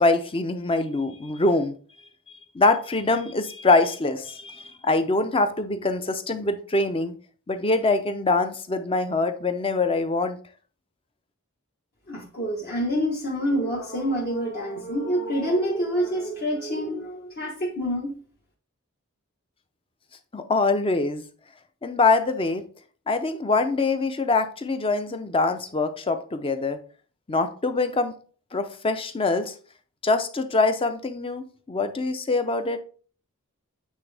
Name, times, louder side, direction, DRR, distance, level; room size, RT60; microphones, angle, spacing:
voice 1, 0.0-1.8 2.5-7.1 7.5-10.4 20.3-21.2 21.8-22.6 23.1-26.8 27.3-28.1 28.5-29.5 30.0-32.8, left 3 dB, 25° left, 9 dB, 0.5 m, -24 dB
voice 2, 12.1-18.2, equal, 45° left, -3 dB, 1.1 m, -27 dB
8.4 x 3.6 x 3.3 m, 0.42 s
head